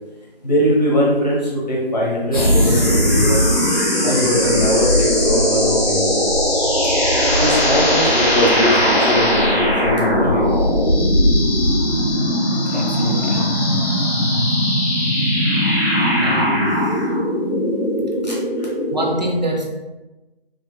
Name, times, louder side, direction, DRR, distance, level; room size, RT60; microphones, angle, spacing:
voice 1, 0.4-3.5 4.0-6.3 7.3-10.6 18.2-18.7, equal, 45° left, -5 dB, 1.2 m, -21 dB
sound 1, 2.3-19.1, equal, 20° left, 1.1 m, -18 dB
voice 2, 12.7-13.5 15.9-16.7 18.9-19.6, right 1 dB, 45° right, -2 dB, 0.6 m, -25 dB
4.2 x 3.2 x 2.3 m, 1.1 s
figure-of-eight pair, 165°, 30 cm